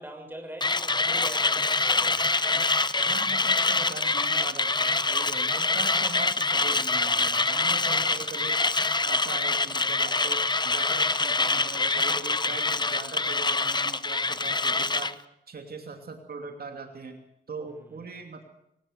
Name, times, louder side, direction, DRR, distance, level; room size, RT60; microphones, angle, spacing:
voice 1, 0.0-2.3 7.7-8.0, right 1 dB, 10° right, 4 dB, 6.3 m, -43 dB
Mechanisms, 0.6-15.1, left 3 dB, 25° left, 0.8 m, -25 dB
Laughter, 2.0-4.8, right 3 dB, 30° right, 6.6 m, -49 dB
voice 2, 3.1-8.6 9.0-15.1 15.5-18.4, right 4 dB, 65° right, 4 dB, 2.9 m, -41 dB
24.0 x 19.0 x 6.8 m, 0.80 s
wide cardioid pair, 95°, 17 cm